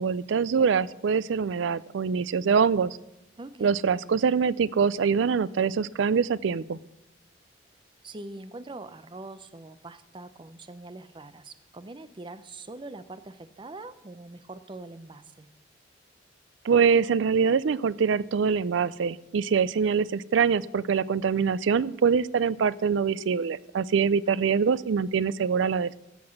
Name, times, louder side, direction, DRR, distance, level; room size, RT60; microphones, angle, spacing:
voice 1, 0.0-3.0 3.6-6.8 16.6-26.0, right 6 dB, 75° right, 19 dB, 0.4 m, -24 dB
voice 2, 3.4-3.7 8.0-15.5 24.2-24.4, right 2 dB, 25° right, 12 dB, 0.6 m, -43 dB
15.5 x 6.0 x 6.4 m, 0.90 s
head